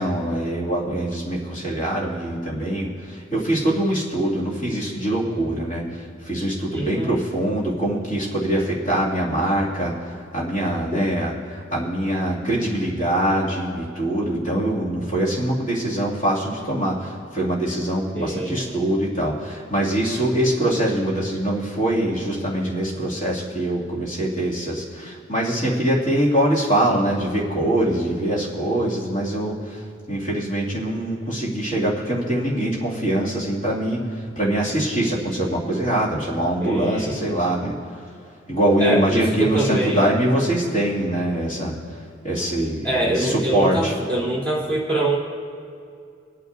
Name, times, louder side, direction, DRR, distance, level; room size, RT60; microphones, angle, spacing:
voice 1, 0.0-38.0 38.5-42.0 42.2-43.9, right 1 dB, 40° left, -6 dB, 2.5 m, -23 dB
voice 2, 6.7-7.2 18.1-18.7 36.6-37.2 38.8-40.0 42.8-45.2, right 1 dB, 10° left, -7 dB, 3.1 m, -24 dB
25.5 x 9.1 x 2.7 m, 2.4 s
head